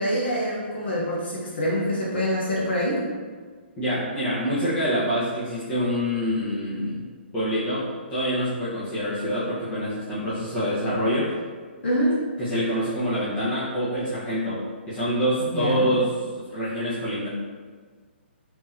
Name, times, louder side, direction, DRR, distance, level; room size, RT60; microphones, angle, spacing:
voice 1, 0.0-3.0 11.8-12.1 15.5-15.9, equal, 65° left, -6 dB, 0.9 m, -25 dB
voice 2, 3.8-7.0 7.3-11.3 12.4-17.3, equal, 15° left, -13 dB, 1.0 m, -26 dB
3.6 x 2.9 x 2.7 m, 1.5 s
figure-of-eight pair, 130°, 6 cm